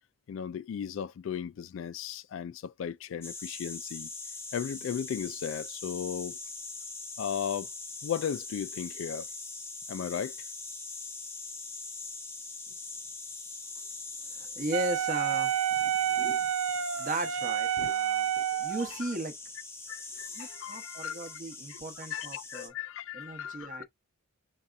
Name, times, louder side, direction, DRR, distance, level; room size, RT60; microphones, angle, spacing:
voice 1, 0.3-4.1 4.5-6.4 7.2-7.7 8.0-9.3 9.9-10.3 17.8-17.9 19.9-21.4 21.7-21.8 22.1-23.8, left 8 dB, 70° left, 0.3 m, -36 dB
sound 1, 3.2-22.7, left 3 dB, 10° left, 0.6 m, -42 dB
voice 2, 14.3-15.6 16.1-16.4 16.9-19.3 20.3-22.7 23.1-23.8, right 1 dB, 40° right, 0.8 m, -37 dB
Wind instrument woodwind instrument, 14.7-18.9, right 10 dB, 80° right, 0.4 m, -29 dB
4.2 x 3.4 x 2.4 m
head